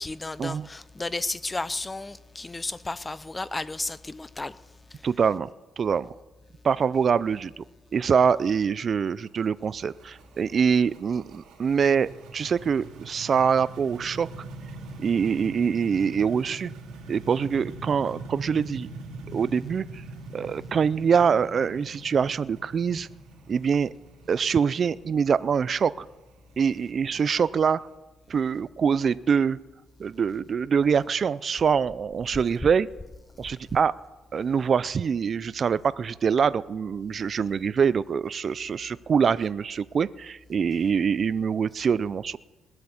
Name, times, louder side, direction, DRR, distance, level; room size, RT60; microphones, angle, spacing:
voice 1, 0.0-4.6 4.9-5.1, left 2 dB, 20° left, 0.6 m, -33 dB
voice 2, 5.0-5.5 5.8-6.2 6.6-7.6 7.9-14.4 15.0-16.7 17.1-18.9 19.3-20.0 20.3-23.1 23.5-23.9 24.3-26.1 26.6-27.8 28.3-29.6 30.0-32.9 33.4-33.9 34.3-42.4, right 6 dB, 50° right, 0.4 m, -24 dB
sound 1, 9.1-27.8, right 3 dB, 85° right, 2.8 m, -43 dB
20.0 x 7.8 x 7.2 m
cardioid pair, 90°, 0 cm